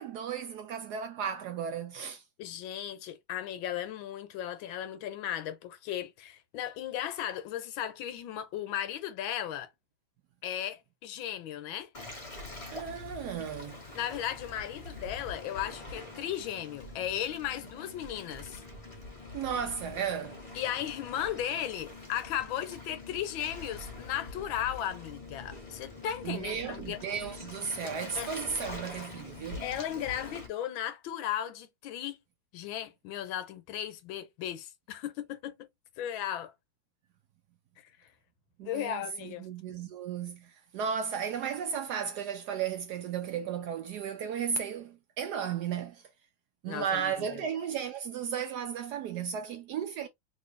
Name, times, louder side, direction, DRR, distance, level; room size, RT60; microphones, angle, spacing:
voice 1, 0.0-2.2 12.7-13.8 19.3-20.4 26.2-29.7 38.6-46.0 46.6-50.1, right 7 dB, 80° right, 0.9 m, -35 dB
voice 2, 2.4-9.7 10.4-11.9 13.9-18.6 20.5-27.0 28.2-28.3 29.6-32.2 32.5-35.7 36.0-36.5 38.6-39.5 46.7-47.4, left 10 dB, 80° left, 1.4 m, -36 dB
Waves surf, 11.9-30.5, left 2 dB, 25° left, 0.8 m, -45 dB
3.1 x 3.0 x 3.2 m
omnidirectional pair, 2.2 m